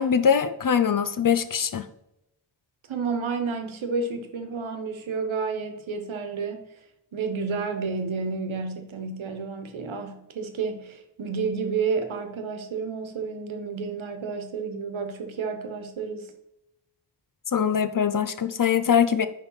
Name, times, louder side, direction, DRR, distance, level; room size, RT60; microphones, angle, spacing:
voice 1, 0.0-1.9 17.5-19.3, left 7 dB, 45° left, 12 dB, 0.5 m, -22 dB
voice 2, 2.9-6.7 7.1-16.3, right 5 dB, 70° right, 7 dB, 1.2 m, -30 dB
9.9 x 3.6 x 5.6 m, 0.87 s
wide cardioid pair, 145°, 48 cm